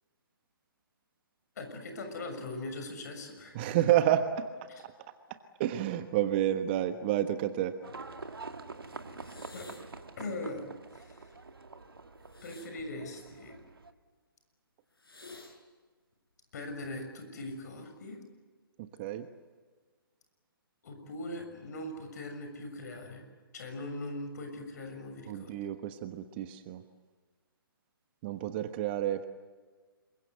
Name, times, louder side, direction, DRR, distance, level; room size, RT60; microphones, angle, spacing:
voice 1, 1.6-3.7 4.7-4.8 9.5-9.7 10.2-10.7 10.9-11.3 12.4-13.5 16.5-18.2 20.8-23.2 23.5-25.6, left 2 dB, 45° left, 6 dB, 6.6 m, -40 dB
voice 2, 3.5-4.9 5.6-7.7 19.0-19.3 25.3-26.8 28.2-29.2, right 12 dB, 25° right, 10 dB, 1.3 m, -30 dB
Livestock farm animals working animals, 7.8-13.9, right 3 dB, 75° right, 2.1 m, -46 dB
sound 1, 9.2-10.0 12.2-13.8 15.0-15.6 16.6-17.0, left 3 dB, 75° left, 6.1 m, -52 dB
27.5 x 23.0 x 8.1 m, 1.4 s
figure-of-eight pair, 140°, 12 cm